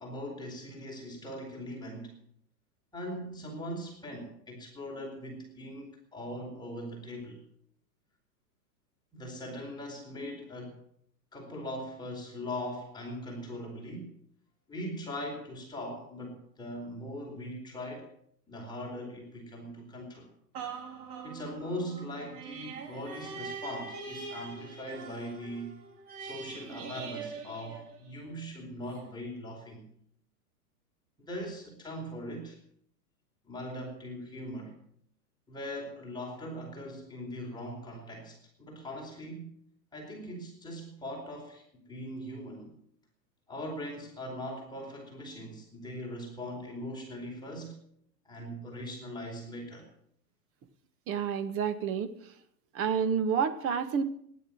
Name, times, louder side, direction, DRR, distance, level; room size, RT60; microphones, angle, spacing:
voice 1, 0.0-2.1 2.9-7.4 9.1-10.8 11.3-14.1 14.7-18.1 18.5-20.3 21.2-25.7 26.2-29.9 31.2-32.6 33.4-34.7 35.5-39.5 39.9-42.7 43.5-47.8 48.2-49.9, equal, 10° left, -1 dB, 4.6 m, -40 dB
sound 1, 20.5-28.4 28.9-29.0, right 5 dB, 60° right, 3.8 m, -43 dB
voice 2, 51.1-52.3 52.7-54.0, right 7 dB, 25° right, 11 dB, 1.5 m, -29 dB
16.5 x 11.0 x 7.7 m, 0.67 s
hypercardioid pair, 125°, 49 cm